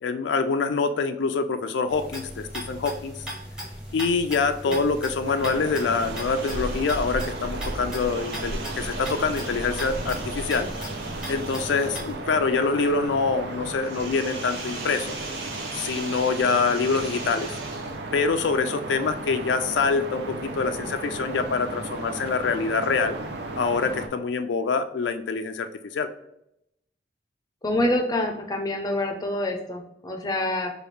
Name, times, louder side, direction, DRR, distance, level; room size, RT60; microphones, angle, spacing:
voice 1, 0.0-3.1 3.9-10.7 11.3-15.1 15.7-17.5 18.1-23.2 23.6-26.1, left 4 dB, 85° left, 8 dB, 0.4 m, -25 dB
sound 1, 1.9-12.1, equal, 5° right, 0.8 m, -38 dB
sound 2, 4.6-12.3 13.8-18.2, right 3 dB, 90° right, 1.4 m, -41 dB
sound 3, 5.3-24.1, right 2 dB, 70° right, 0.6 m, -34 dB
voice 2, 27.6-30.7, left 1 dB, 20° left, 3 dB, 0.5 m, -26 dB
5.0 x 2.3 x 3.1 m, 0.79 s
head